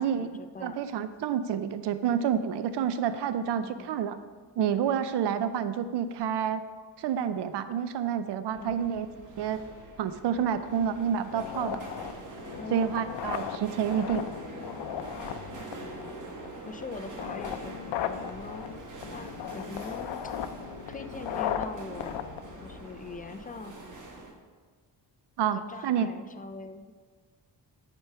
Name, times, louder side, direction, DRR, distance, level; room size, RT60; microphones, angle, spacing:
voice 1, 0.0-0.8 3.6-4.0 8.6-8.8 12.5-12.9 16.6-18.6 19.1-20.2 20.9-22.2 22.6-23.8 25.5-26.9, left 3 dB, 20° left, 8 dB, 0.3 m, -42 dB
voice 2, 0.6-4.2 4.6-6.6 7.0-9.1 9.4-9.6 10.0-11.8 12.7-14.3 25.4-26.1, right 8 dB, 75° right, 12 dB, 0.5 m, -29 dB
sound 1, 8.5-24.3, right 2 dB, 45° right, 1.3 m, -44 dB
sound 2, 11.3-23.3, left 9 dB, 85° left, 0.6 m, -37 dB
9.7 x 4.6 x 5.6 m, 1.5 s
wide cardioid pair, 160°, 42 cm